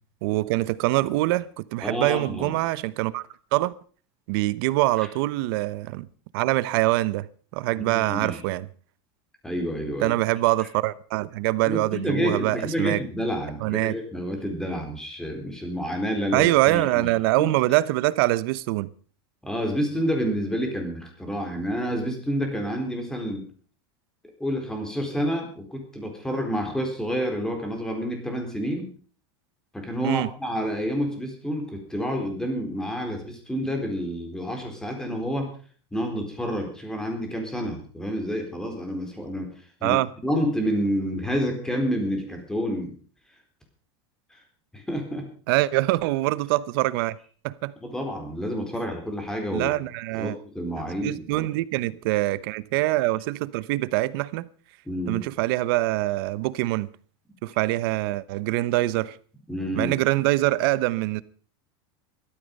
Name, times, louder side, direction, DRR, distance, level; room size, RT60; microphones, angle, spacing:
voice 1, 0.2-3.2 3.5-3.7 4.3-6.1 6.3-7.2 7.5-8.7 10.0-13.0 13.6-13.9 16.3-18.9 30.0-30.3 39.8-40.1 45.5-47.1 47.4-47.7 49.5-50.4 51.0-54.5 55.1-56.9 57.4-59.2 59.7-61.2, right 18 dB, 60° right, 0.9 m, -24 dB
voice 2, 1.8-2.5 7.8-8.4 9.4-10.1 11.7-17.1 17.4-17.5 19.4-23.4 24.4-28.9 29.7-35.5 35.9-39.5 39.8-40.0 40.2-42.9 44.7-45.3 47.8-49.7 50.1-51.5 54.9-55.2 59.5-59.9, equal, 5° left, 4.1 m, -29 dB
16.0 x 13.5 x 5.4 m
supercardioid pair, 150°, 13 cm